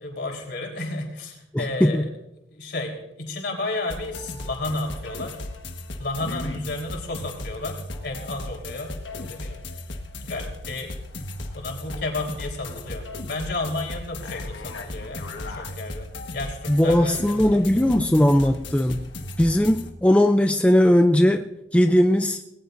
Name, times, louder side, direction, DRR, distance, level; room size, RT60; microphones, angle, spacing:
voice 1, 0.0-2.1 2.5-5.4 6.0-9.6 10.2-10.9 11.5-18.2, left 2 dB, 65° left, 1 dB, 3.8 m, -32 dB
voice 2, 1.5-2.0 16.7-19.1 19.4-22.4, left 1 dB, 5° left, 6 dB, 0.4 m, -19 dB
sound 1, 3.9-19.9, left 2 dB, 85° left, 1.4 m, -36 dB
19.5 x 18.5 x 2.6 m, 0.87 s
head